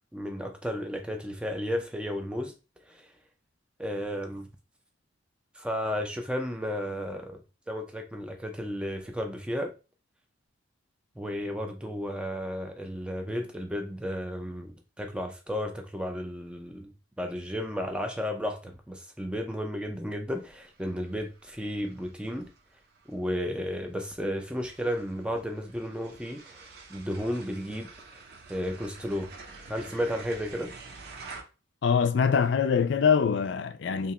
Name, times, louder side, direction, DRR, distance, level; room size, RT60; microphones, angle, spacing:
voice 1, 0.1-2.5 2.9-3.1 3.8-4.5 5.6-7.4 7.7-9.7 11.2-16.9 17.2-22.5 23.1-26.6 26.9-27.9 28.5-29.3 29.7-30.7, equal, 5° right, 0.4 m, -33 dB
sound 1, 20.3-31.4, right 4 dB, 55° right, 0.6 m, -49 dB
voice 2, 31.8-34.1, left 6 dB, 60° left, 0.3 m, -24 dB
2.8 x 2.2 x 3.9 m
head